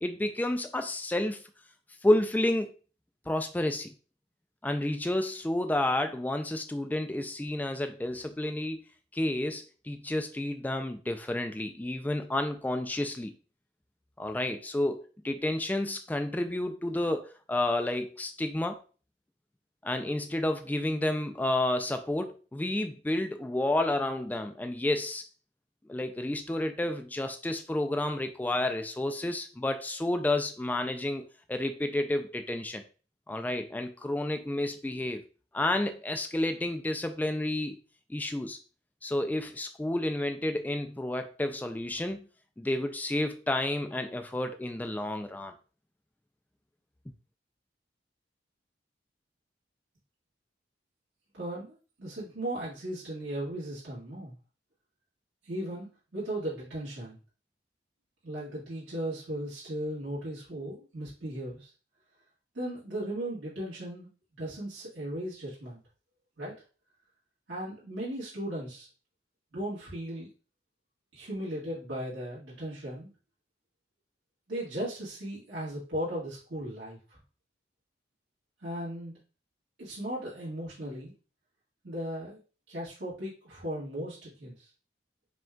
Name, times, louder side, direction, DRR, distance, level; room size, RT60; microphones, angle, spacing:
voice 1, 0.0-1.4 2.0-2.7 3.3-3.9 4.6-8.8 9.1-13.3 14.2-18.8 19.8-25.2 25.9-31.2 31.5-32.8 33.3-35.2 35.5-37.8 38.1-38.6 39.0-42.2 42.6-45.5, left 1 dB, 10° left, 7 dB, 0.3 m, -30 dB
voice 2, 51.3-54.4 55.4-55.9 56.1-57.2 58.2-61.7 62.5-64.1 64.4-65.8 66.4-66.6 67.5-68.9 69.5-70.3 71.1-73.1 74.5-77.0 78.6-79.2 79.8-81.1 81.8-82.4 82.7-84.7, right 1 dB, 80° right, -9 dB, 1.8 m, -37 dB
5.0 x 2.3 x 3.7 m, 0.36 s
head